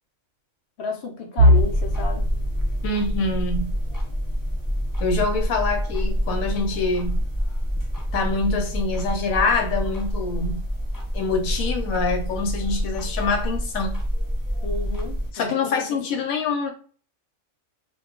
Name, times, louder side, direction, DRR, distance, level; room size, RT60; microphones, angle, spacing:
voice 1, 0.8-2.3 14.6-15.2 15.5-15.8 16.1-16.2, left 3 dB, 60° left, 0.8 m, -32 dB
sound 1, 1.4-13.2 13.6-13.9 14.3-14.4 15.3-15.8, equal, 80° right, 0.3 m, -28 dB
sound 2, 1.5-15.3, equal, 30° left, 0.4 m, -27 dB
voice 2, 2.8-3.7 5.0-7.2 8.1-10.6 11.1-14.0 15.3-16.7, left 3 dB, 80° left, 1.1 m, -25 dB
2.4 x 2.3 x 3.6 m
omnidirectional pair, 1.4 m